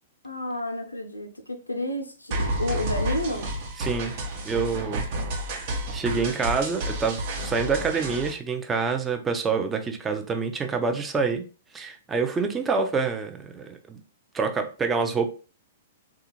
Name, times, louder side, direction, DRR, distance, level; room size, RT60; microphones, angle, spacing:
voice 1, 0.2-3.5, left 1 dB, 85° left, 0.5 m, -31 dB
sound 1, 2.3-8.3, right 1 dB, 45° right, 0.8 m, -30 dB
voice 2, 3.8-4.1 4.4-5.1 5.5-11.4 11.7-14.0 14.3-15.3, right 5 dB, 15° right, 0.5 m, -27 dB
3.5 x 2.4 x 2.9 m
figure-of-eight pair, 105°, 0 cm